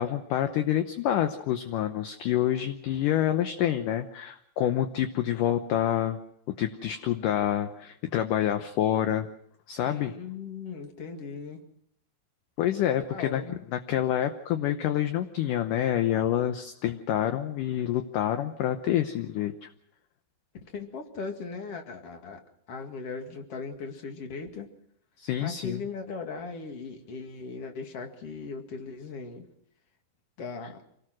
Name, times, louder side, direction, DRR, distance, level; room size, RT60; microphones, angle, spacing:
voice 1, 0.0-6.2 6.6-9.3 9.7-10.1 12.6-13.4 13.7-19.7 25.2-25.8, left 11 dB, 70° left, 8 dB, 2.2 m, -27 dB
voice 2, 9.8-11.6 12.9-13.6 20.7-22.4 22.7-24.7 25.4-29.4 30.4-30.8, left 4 dB, 45° left, 4 dB, 2.7 m, -38 dB
27.0 x 18.5 x 6.2 m, 0.71 s
omnidirectional pair, 4.5 m